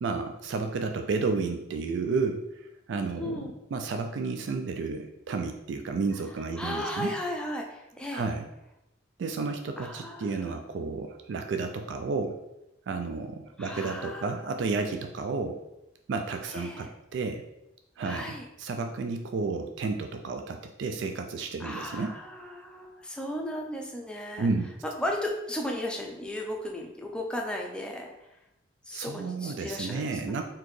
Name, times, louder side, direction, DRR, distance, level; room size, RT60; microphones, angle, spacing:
voice 1, 0.0-7.1 8.1-8.4 9.2-12.4 12.9-15.6 16.1-17.4 18.0-22.1 24.4-24.7 28.9-30.4, right 4 dB, 75° right, 5 dB, 0.3 m, -32 dB
voice 2, 3.2-3.5 6.6-8.2 9.8-10.5 13.6-14.2 16.5-16.9 18.0-18.4 21.6-24.5 24.8-28.1 28.9-30.4, left 1 dB, 5° left, 0 dB, 0.5 m, -35 dB
4.1 x 2.8 x 3.1 m, 0.89 s
head